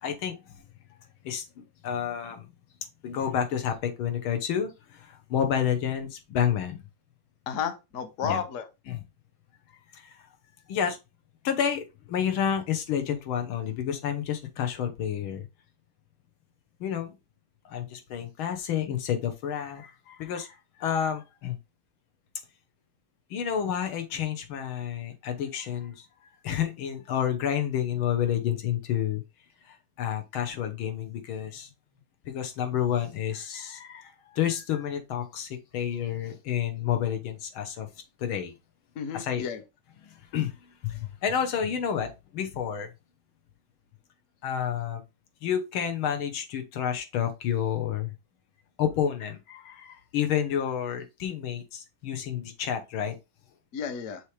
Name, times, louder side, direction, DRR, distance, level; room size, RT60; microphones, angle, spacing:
voice 1, 0.0-0.4 1.3-2.5 3.0-4.7 5.0-6.8 8.2-8.4 8.9-9.0 9.9-10.0 10.7-11.0 11.4-15.4 16.8-17.1 17.7-21.6 23.3-25.9 26.4-29.2 30.0-31.7 32.3-37.9 38.2-38.5 39.1-39.4 40.0-40.5 40.8-42.9 44.4-45.0 45.4-48.1 48.8-53.2, left 9 dB, 80° left, 1.8 m, -30 dB
voice 2, 7.5-8.6 39.0-39.6 53.7-54.2, left 7 dB, 50° left, 1.0 m, -32 dB
6.4 x 3.2 x 4.8 m
omnidirectional pair, 2.2 m